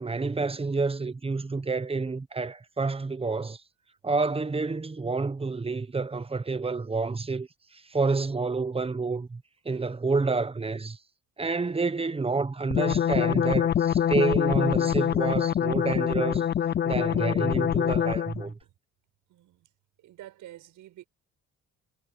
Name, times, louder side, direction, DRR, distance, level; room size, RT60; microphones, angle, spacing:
voice 1, 0.0-3.6 4.0-11.0 11.4-16.5 16.8-18.6, right 4 dB, 20° right, 1.0 m, -29 dB
sound 1, 12.7-18.5, left 9 dB, 35° left, 0.4 m, -25 dB
voice 2, 19.3-19.7 20.0-21.1, right 14 dB, 85° right, 6.1 m, -48 dB
cardioid pair, 90°, 30 cm